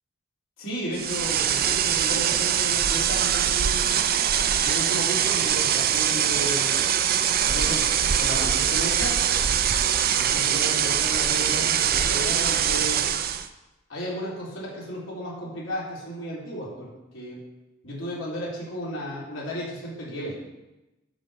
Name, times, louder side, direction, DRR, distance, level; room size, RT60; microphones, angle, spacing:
voice 1, 0.6-4.1 4.6-6.7 7.4-9.2 10.2-13.0 13.9-17.4 17.8-20.4, equal, 70° left, -6 dB, 3.9 m, -34 dB
sound 1, 0.9-13.5, right 9 dB, 45° right, 0.5 m, -23 dB
11.0 x 5.2 x 6.9 m, 1.0 s
head